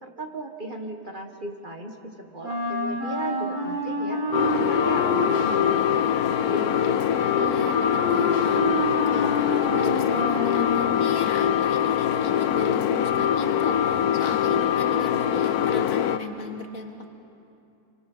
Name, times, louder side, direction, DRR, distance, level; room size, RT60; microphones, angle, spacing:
voice 1, 0.0-4.2 4.7-6.8, right 2 dB, 35° right, 3 dB, 1.6 m, -36 dB
Wind instrument woodwind instrument, 2.4-11.0, left 1 dB, 70° right, 7.0 m, -29 dB
sound 1, 4.3-16.2, left 9 dB, 80° left, 1.2 m, -23 dB
voice 2, 7.4-16.9, left 2 dB, 65° left, 4 dB, 2.0 m, -36 dB
27.0 x 25.0 x 5.6 m, 2.7 s
omnidirectional pair, 1.6 m